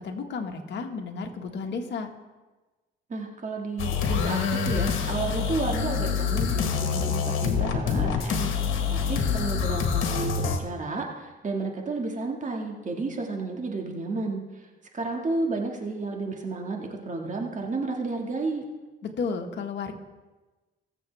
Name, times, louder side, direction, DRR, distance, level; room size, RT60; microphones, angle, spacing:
voice 1, 0.0-2.1 19.2-19.9, left 4 dB, 65° left, 3 dB, 1.6 m, -32 dB
voice 2, 3.1-8.5 8.9-14.7 14.9-18.6, right 3 dB, 40° right, 1 dB, 2.0 m, -32 dB
sound 1, 3.8-10.6, left 6 dB, 85° left, 1.4 m, -26 dB
21.0 x 7.4 x 3.5 m, 1.2 s
cardioid pair, 90°, 20 cm